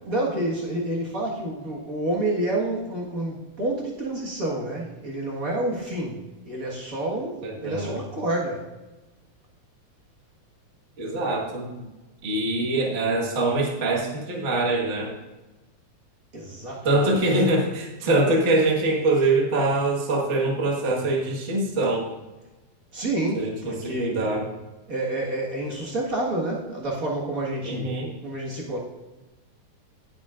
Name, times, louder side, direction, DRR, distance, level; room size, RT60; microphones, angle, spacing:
voice 1, 0.0-8.6 16.3-17.2 22.9-24.3 24.9-27.9 28.2-28.8, right 1 dB, 50° right, -4 dB, 1.0 m, -29 dB
voice 2, 7.4-8.0 11.0-11.8 12.2-15.1 16.8-22.2 23.3-24.4 27.6-28.1, right 2 dB, 75° right, -2 dB, 0.6 m, -24 dB
18.5 x 7.2 x 2.5 m, 1.1 s
omnidirectional pair, 4.0 m